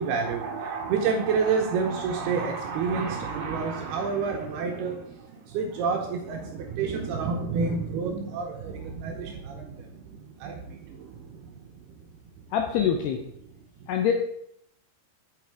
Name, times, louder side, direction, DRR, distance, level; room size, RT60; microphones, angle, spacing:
voice 1, 0.0-12.0 12.4-12.5 13.8-13.9, right 5 dB, 75° right, 2 dB, 2.4 m, -29 dB
voice 2, 12.5-13.2 13.9-14.1, left 8 dB, 80° left, 4 dB, 2.4 m, -24 dB
8.4 x 8.1 x 4.7 m, 0.71 s
omnidirectional pair, 5.5 m